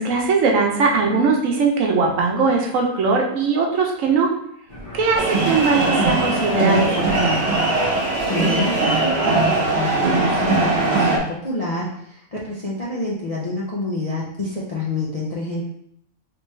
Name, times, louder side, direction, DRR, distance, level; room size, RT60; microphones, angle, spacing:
voice 1, 0.0-4.3 4.9-7.6, right 4 dB, 70° right, 0 dB, 1.0 m, -20 dB
Fixed-wing aircraft airplane, 4.7-11.2, equal, 35° left, 1.3 m, -36 dB
sound 1, 5.1-11.2, right 2 dB, 35° right, 0.9 m, -20 dB
voice 2, 8.3-15.6, left 2 dB, 55° left, -6 dB, 0.4 m, -27 dB
3.4 x 3.0 x 3.1 m, 0.71 s
omnidirectional pair, 1.5 m